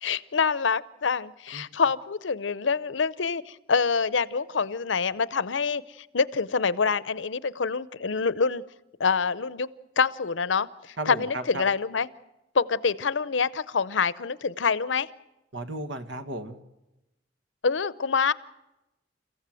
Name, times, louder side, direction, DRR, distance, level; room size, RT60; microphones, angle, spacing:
voice 1, 0.0-8.6 9.0-9.7 10.0-12.1 12.5-15.1 17.6-18.3, left 5 dB, 85° left, 18 dB, 0.7 m, -26 dB
voice 2, 11.0-11.6 15.5-16.6, right 1 dB, 75° right, 10 dB, 1.7 m, -34 dB
30.0 x 15.5 x 7.7 m, 0.96 s
head